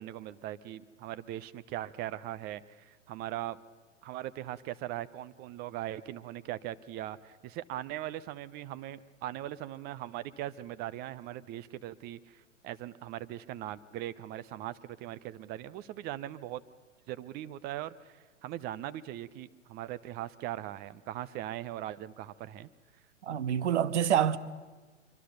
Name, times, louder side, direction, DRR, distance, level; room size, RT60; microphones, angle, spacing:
voice 1, 0.0-3.6 4.0-16.6 17.1-22.7, right 13 dB, 25° right, 0.7 m, -40 dB
voice 2, 23.2-24.4, right 9 dB, 65° right, 1.3 m, -27 dB
24.0 x 24.0 x 6.6 m
hypercardioid pair, 115°, 38 cm